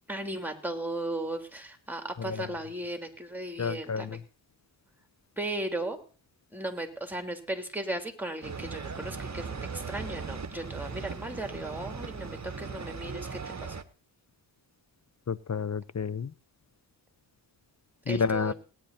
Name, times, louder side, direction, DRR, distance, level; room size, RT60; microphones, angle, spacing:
voice 1, 0.1-4.2 5.4-6.0 6.5-13.8 18.1-18.5, right 1 dB, 5° right, 3.5 m, -36 dB
voice 2, 3.6-4.2 15.3-16.3 18.1-18.5, left 5 dB, 35° left, 0.7 m, -30 dB
sound 1, 8.4-13.8, right 5 dB, 35° right, 1.2 m, -38 dB
18.0 x 10.5 x 4.3 m
cardioid pair, 45°, 46 cm